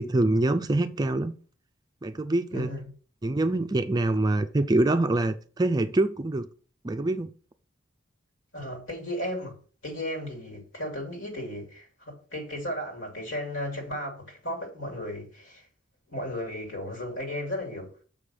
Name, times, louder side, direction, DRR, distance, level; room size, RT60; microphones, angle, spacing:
voice 1, 0.0-1.4 2.0-2.7 3.2-6.5 6.8-7.3, right 2 dB, 20° right, 0.4 m, -25 dB
voice 2, 2.5-2.9 8.5-9.5 9.8-15.7 16.1-18.0, left 1 dB, 70° left, 2.6 m, -35 dB
6.8 x 5.0 x 5.5 m
head